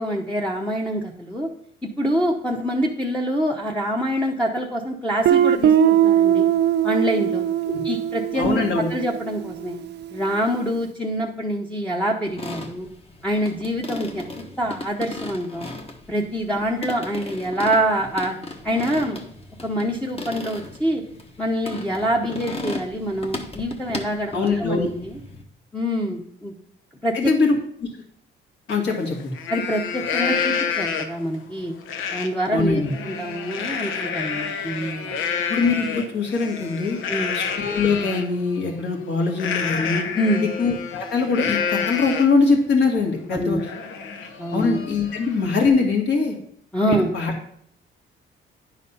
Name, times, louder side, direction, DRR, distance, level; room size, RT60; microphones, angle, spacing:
voice 1, 0.0-1.5 1.8-6.5 6.8-7.5 7.8-9.8 10.1-12.9 13.2-15.7 16.1-18.4 18.6-19.2 19.6-21.0 21.4-25.2 25.7-26.5 27.0-27.3 29.5-31.7 32.1-35.2 37.1-37.4 40.1-40.4 43.3-43.6 44.4-44.8 46.7-47.1, equal, 5° left, -2 dB, 0.9 m, -25 dB
Guitar, 5.3-9.9, right 10 dB, 60° right, 0.4 m, -20 dB
voice 2, 8.3-8.9 24.3-24.9 27.1-27.6 28.7-29.3 32.5-32.9 35.5-37.0 37.3-40.0 40.6-43.6 44.5-46.4 46.9-47.3, left 4 dB, 60° left, 0 dB, 2.3 m, -22 dB
sound 1, 12.3-25.4, left 2 dB, 30° left, 1.3 m, -36 dB
Livestock farm animals working animals, 28.7-28.8 29.2-31.3 31.9-32.3 32.7-38.3 39.4-42.4 42.9-43.0 43.3-45.7, left 6 dB, 80° left, 0.9 m, -28 dB
10.0 x 4.1 x 5.6 m, 0.65 s
cardioid pair, 90°, 20 cm